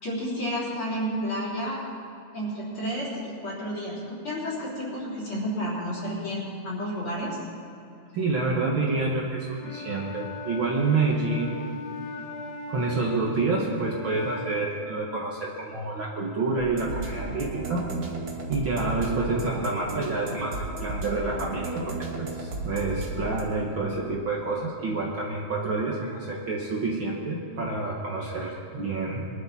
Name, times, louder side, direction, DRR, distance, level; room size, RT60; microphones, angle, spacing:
voice 1, 0.0-1.8 2.3-7.4, equal, 35° left, -7 dB, 4.6 m, -31 dB
voice 2, 8.1-11.5 12.7-17.9 18.5-29.3, right 3 dB, 90° right, -3 dB, 1.0 m, -28 dB
Wind instrument woodwind instrument, 9.5-14.7, left 3 dB, 60° left, 2.3 m, -39 dB
sound 1, 16.6-23.4, right 2 dB, 40° right, 1.5 m, -34 dB
23.0 x 12.0 x 4.3 m, 2.7 s
omnidirectional pair, 4.4 m